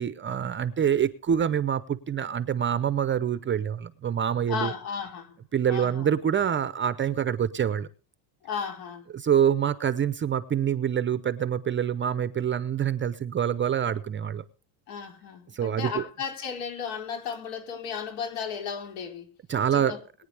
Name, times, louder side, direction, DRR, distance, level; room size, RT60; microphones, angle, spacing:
voice 1, 0.0-4.7 5.5-7.9 9.1-14.4 15.5-16.0 19.5-20.0, right 8 dB, 25° right, 0.7 m, -26 dB
voice 2, 4.5-5.4 5.7-6.1 8.4-9.1 14.9-19.3 19.7-20.0, left 6 dB, 70° left, 3.9 m, -34 dB
22.0 x 9.4 x 3.4 m
cardioid pair, 135°, 49 cm